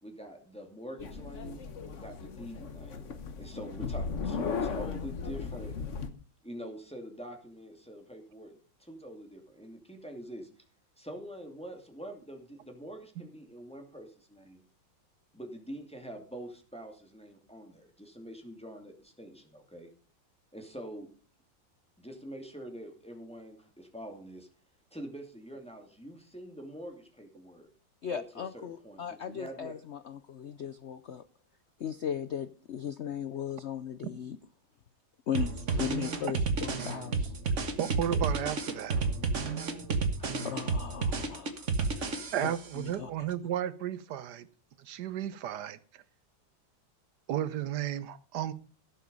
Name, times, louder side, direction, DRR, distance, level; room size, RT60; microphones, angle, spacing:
voice 1, 0.0-5.7 6.4-8.6 8.9-10.4 11.0-14.7 15.3-19.9 20.5-21.1 22.0-24.5 24.9-27.7 28.1-29.8 38.1-38.2 40.2-40.3 41.3-41.4, equal, 5° left, 3 dB, 2.4 m, -45 dB
sound 1, 1.0-6.1, left 5 dB, 45° left, 1.2 m, -36 dB
voice 2, 28.0-31.2 31.8-34.4 35.3-37.3 40.2-43.1, left 8 dB, 80° left, 13 dB, 0.6 m, -37 dB
sound 2, 35.3-42.7, right 4 dB, 45° right, 1.6 m, -31 dB
voice 3, 37.8-39.0 42.3-44.5 44.8-46.0 47.3-48.5, right 10 dB, 65° right, 15 dB, 1.4 m, -33 dB
16.5 x 7.2 x 5.3 m, 0.39 s
omnidirectional pair, 2.0 m